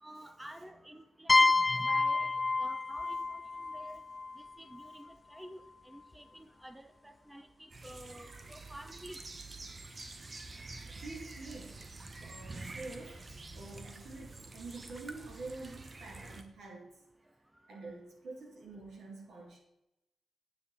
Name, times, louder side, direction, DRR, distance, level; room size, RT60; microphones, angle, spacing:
voice 1, 0.0-4.0 4.3-9.2 17.8-17.9, right 1 dB, 10° right, 9 dB, 1.0 m, -50 dB
sound 1, 1.3-4.9, left 3 dB, 30° left, 0.5 m, -29 dB
sound 2, 7.7-16.4, right 3 dB, 40° right, 1.3 m, -47 dB
voice 2, 10.9-11.8 12.2-17.0 17.7-19.6, right 3 dB, 75° right, -1 dB, 3.2 m, -47 dB
9.5 x 7.9 x 4.3 m, 0.91 s
supercardioid pair, 45°, 0 cm